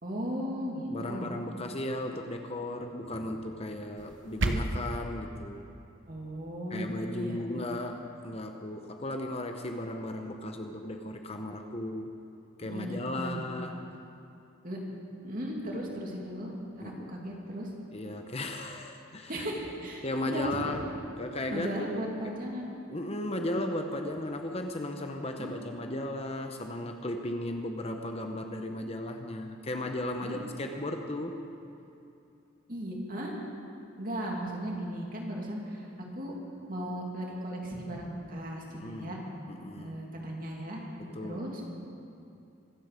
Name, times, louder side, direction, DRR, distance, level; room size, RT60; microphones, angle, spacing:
voice 1, 0.0-1.3 3.2-3.3 6.1-7.4 12.6-13.5 14.6-14.8 15.2-17.7 19.3-20.7 21.5-22.7 25.4-25.5 30.2-30.4 32.7-33.4 34.0-36.3 36.7-39.2 39.8-40.8 41.2-41.6, equal, 40° right, -2 dB, 2.7 m, -36 dB
voice 2, 0.9-5.7 6.7-12.1 12.6-13.8 16.8-17.2 17.9-19.4 20.0-20.9 21.2-22.1 22.9-31.5 38.7-39.1 39.5-40.0 41.0-41.5, left 1 dB, 30° left, 5 dB, 0.8 m, -36 dB
sound 1, 4.0-5.0, right 2 dB, 60° right, 0.9 m, -31 dB
24.5 x 8.5 x 6.8 m, 2.7 s
head